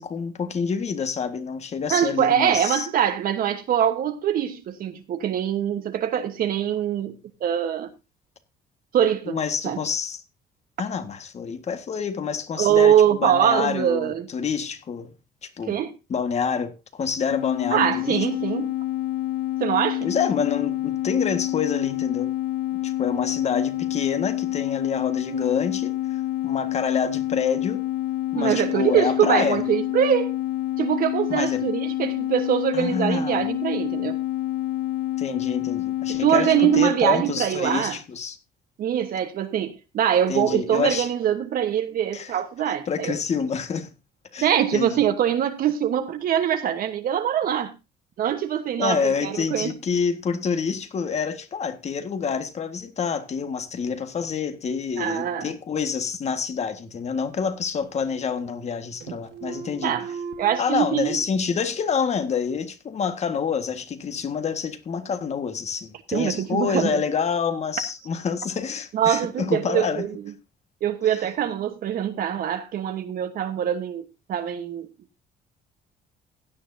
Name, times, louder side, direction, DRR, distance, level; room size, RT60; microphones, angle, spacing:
voice 1, 0.0-2.9 9.3-10.2 10.8-15.1 15.4-15.7 16.1-18.2 20.0-22.3 22.8-27.9 28.3-29.6 31.3-31.7 32.7-33.4 35.2-38.4 40.3-41.1 42.1-42.3 42.9-43.9 44.3-45.0 48.8-60.0 60.6-70.0, left 6 dB, 40° left, 1.7 m, -27 dB
voice 2, 1.9-7.9 8.9-9.4 9.6-9.8 12.6-14.3 15.7-15.9 17.7-18.8 19.6-20.1 28.3-30.3 30.8-34.2 36.1-38.0 38.8-43.2 44.4-47.7 48.2-49.7 55.0-55.5 59.8-60.1 60.4-61.2 66.1-67.0 68.9-70.1 70.8-74.0 74.3-74.9, right 9 dB, 60° right, 1.2 m, -23 dB
sound 1, 17.3-36.9, left 15 dB, 85° left, 0.5 m, -27 dB
sound 2, 56.5-57.5 57.8-58.7 59.0-60.6, right 5 dB, 85° right, 1.6 m, -39 dB
16.0 x 9.6 x 2.7 m
cardioid pair, 110°, 17 cm